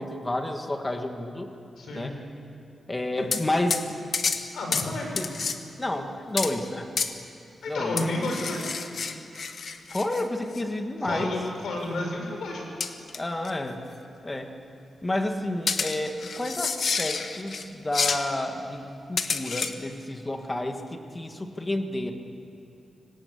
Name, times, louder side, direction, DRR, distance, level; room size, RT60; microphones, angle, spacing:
voice 1, 0.0-1.5 1.9-2.1 2.9-3.8 4.9-5.3 5.8-7.0 7.7-8.2 9.9-11.4 13.1-13.8 14.2-14.5 15.0-22.1, left 1 dB, 15° left, 5 dB, 1.6 m, -30 dB
voice 2, 1.8-2.1 4.5-5.2 7.6-8.6 11.0-12.6, left 2 dB, 75° left, 0 dB, 6.4 m, -31 dB
sound 1, 3.3-3.4 3.7-3.9 4.1-4.4 4.7-4.9 5.2-5.6 6.4-6.5 7.0-7.1 8.0-10.2 10.5-10.6 12.8-13.2 13.4-13.5 15.7-17.6 17.9-18.3 19.2-19.7, left 5 dB, 50° left, 1.3 m, -29 dB
25.5 x 19.0 x 8.3 m, 2.8 s
wide cardioid pair, 180°, 0 cm